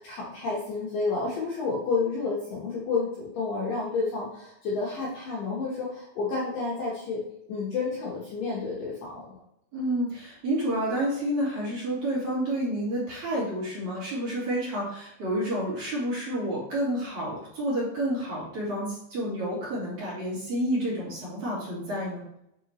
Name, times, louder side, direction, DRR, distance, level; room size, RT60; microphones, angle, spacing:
voice 1, 0.0-7.2 7.5-9.2, left 4 dB, 65° left, -5 dB, 2.2 m, -30 dB
voice 2, 9.7-22.2, right 1 dB, 45° right, -7 dB, 3.7 m, -29 dB
9.1 x 4.9 x 3.1 m, 0.78 s
omnidirectional pair, 5.3 m